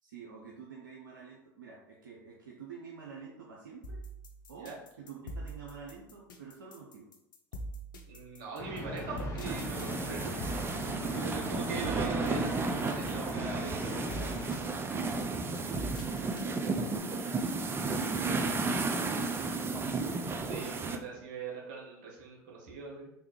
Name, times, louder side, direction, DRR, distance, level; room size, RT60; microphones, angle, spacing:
voice 1, 0.0-4.0 4.5-7.1 14.6-15.7 16.4-17.3, right 5 dB, 85° right, -3 dB, 0.5 m, -49 dB
sound 1, 3.8-17.0, right 1 dB, 80° left, 0.5 m, -43 dB
voice 2, 8.1-10.4 11.1-14.1 20.4-23.1, right 5 dB, 60° right, -2 dB, 1.2 m, -41 dB
sound 2, 8.6-14.5, left 1 dB, 25° left, 0.9 m, -39 dB
sound 3, 9.5-21.0, right 3 dB, 20° right, 0.4 m, -33 dB
3.4 x 2.4 x 3.0 m, 0.80 s
hypercardioid pair, 80°, 10 cm